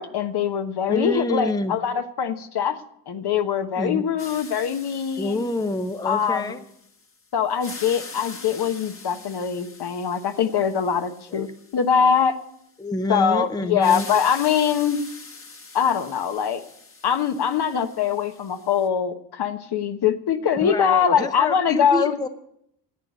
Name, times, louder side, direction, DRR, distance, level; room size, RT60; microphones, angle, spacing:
voice 1, 0.0-2.8 3.1-5.4 6.0-6.5 7.3-12.4 13.1-15.0 15.7-16.6 17.0-22.2, left 7 dB, 55° left, 8 dB, 1.2 m, -23 dB
voice 2, 0.9-1.7 3.8-4.1 5.2-6.6 11.3-11.4 12.8-14.1 20.5-22.3, left 2 dB, 10° left, 9 dB, 0.7 m, -27 dB
sound 1, 4.2-7.1 7.5-12.3 13.8-18.9, left 4 dB, 25° left, 1.5 m, -43 dB
11.0 x 8.6 x 8.2 m, 0.75 s
supercardioid pair, 75°, 48 cm